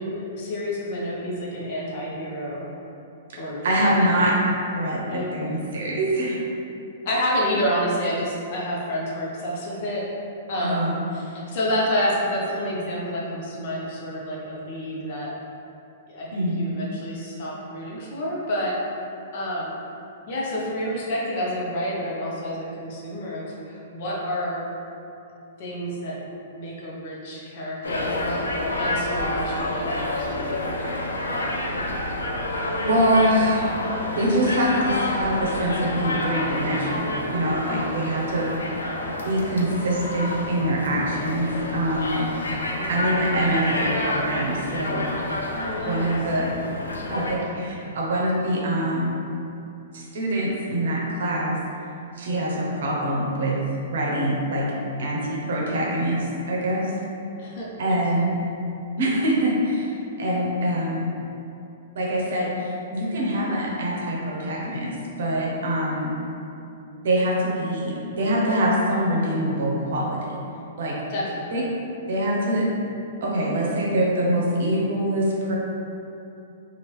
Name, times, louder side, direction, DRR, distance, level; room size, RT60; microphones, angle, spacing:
voice 1, 0.0-2.7 3.3-4.3 5.1-5.5 7.0-15.3 16.1-19.1 19.3-19.8 20.3-24.7 25.6-26.2 26.5-28.4 28.8-31.1 42.7-43.0 45.5-46.1 57.4-57.7 58.2-58.3 67.8-68.1 71.1-71.7, equal, 55° left, -5 dB, 0.8 m, -29 dB
voice 2, 3.6-4.4 4.8-6.4 10.6-10.9 16.3-16.6 32.8-33.8 34.1-38.7 39.2-42.3 42.9-45.1 45.9-46.5 47.1-49.2 49.9-51.6 52.2-53.6 53.9-54.7 55.0-56.9 57.8-58.4 59.0-59.9 60.2-61.2 61.9-66.2 67.0-70.2 70.8-71.0 71.5-71.6 72.1-72.6 73.2-75.5, right 1 dB, 70° right, -3 dB, 0.7 m, -24 dB
sound 1, 27.8-47.4, left 1 dB, 90° left, 0.4 m, -29 dB
2.9 x 2.5 x 3.2 m, 2.8 s
hypercardioid pair, 125°, 0 cm